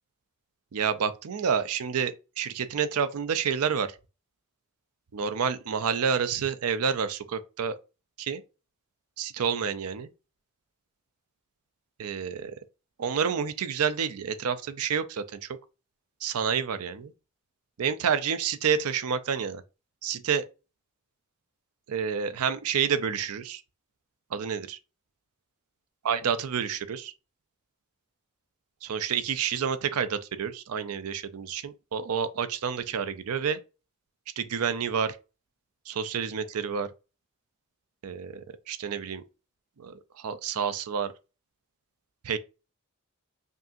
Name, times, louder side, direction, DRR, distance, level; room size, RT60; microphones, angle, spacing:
voice 1, 0.7-4.0 5.1-7.8 8.2-8.4 9.2-10.1 12.0-12.5 13.0-15.6 16.2-17.1 17.8-19.6 20.0-20.4 21.9-23.6 24.3-24.8 26.0-27.1 28.8-33.6 34.4-35.2 35.9-36.9 38.0-39.2 39.8-41.1 42.2-42.4, right 7 dB, 80° right, 0.5 m, -29 dB
5.3 x 2.4 x 2.7 m
head